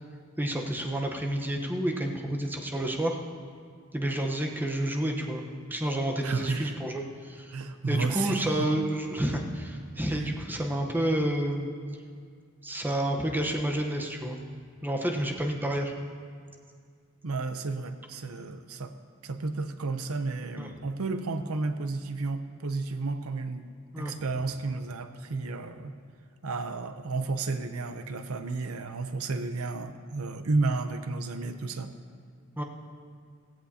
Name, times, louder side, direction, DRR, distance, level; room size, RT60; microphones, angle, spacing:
voice 1, 0.4-3.2 3.9-7.5 7.9-11.7 12.6-14.4 14.8-15.9 20.6-20.7 23.9-24.1 32.6-32.7, right 1 dB, 10° right, 1 dB, 1.0 m, -29 dB
voice 2, 6.2-6.7 7.5-8.7 10.1-10.3 17.2-18.9 19.2-23.7 24.0-25.9 26.4-31.9, right 3 dB, 85° right, 8 dB, 0.7 m, -32 dB
16.5 x 16.0 x 2.8 m, 2.1 s
head